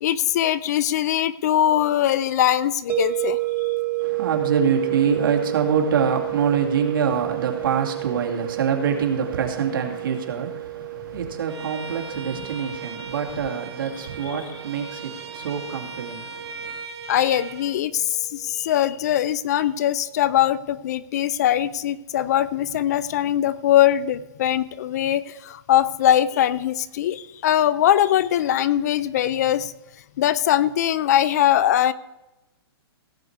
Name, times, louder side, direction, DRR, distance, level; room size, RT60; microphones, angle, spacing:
voice 1, 0.0-3.4 17.1-29.7 30.2-31.9, left 11 dB, 40° left, 0.4 m, -21 dB
sound 1, 2.9-17.8, right 20 dB, 15° right, 0.6 m, -31 dB
voice 2, 4.0-16.8, right 7 dB, 55° right, 2.5 m, -25 dB
Bowed string instrument, 11.5-17.8, right 3 dB, 90° right, 1.3 m, -39 dB
17.0 x 8.0 x 4.6 m
hypercardioid pair, 160°, 13 cm